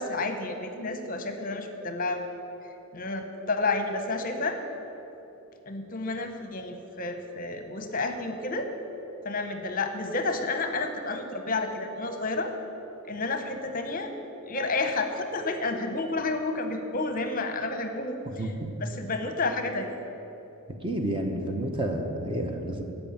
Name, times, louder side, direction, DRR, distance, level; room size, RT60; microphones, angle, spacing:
voice 1, 0.0-2.3 2.9-4.6 5.7-8.7 9.2-12.5 13.0-14.1 14.5-18.5 18.8-20.0, left 3 dB, 40° left, 6 dB, 0.8 m, -30 dB
voice 2, 20.8-22.8, right 1 dB, 25° right, 4 dB, 0.8 m, -30 dB
13.0 x 5.4 x 8.7 m, 2.9 s
head